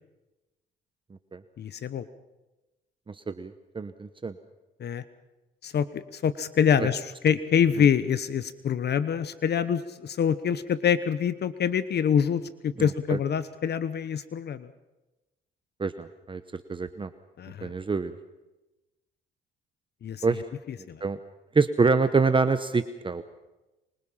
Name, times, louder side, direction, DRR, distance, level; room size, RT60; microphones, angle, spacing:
voice 1, 1.6-2.1 4.8-5.0 5.6-14.7 17.4-17.7 20.0-20.2 20.9-21.0, left 8 dB, 55° left, 14 dB, 1.1 m, -25 dB
voice 2, 3.1-4.3 6.8-6.9 7.8-7.9 12.8-13.2 15.8-17.1 17.6-18.2 20.2-20.4 20.8-21.2 21.5-23.2, right 4 dB, 25° right, 11 dB, 1.1 m, -26 dB
25.0 x 24.5 x 5.7 m, 1.0 s
cardioid pair, 90°, 20 cm